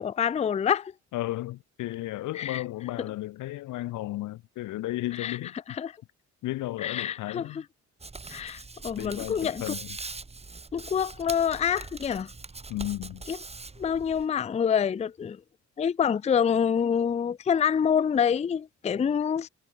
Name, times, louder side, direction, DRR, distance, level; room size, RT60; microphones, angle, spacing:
voice 1, 0.0-0.9 2.3-2.6 5.2-5.4 5.8-5.9 6.8-7.5 8.3-9.7 10.7-12.3 13.3-13.4 13.8-15.4 15.8-19.5, left 7 dB, 25° left, 0.4 m, -26 dB
voice 2, 1.1-5.5 6.4-7.6 9.0-10.0 12.7-13.2, left 16 dB, 90° left, 1.8 m, -34 dB
Hands, 8.0-14.2, right 3 dB, 20° right, 1.8 m, -42 dB
cardioid pair, 90°, 30 cm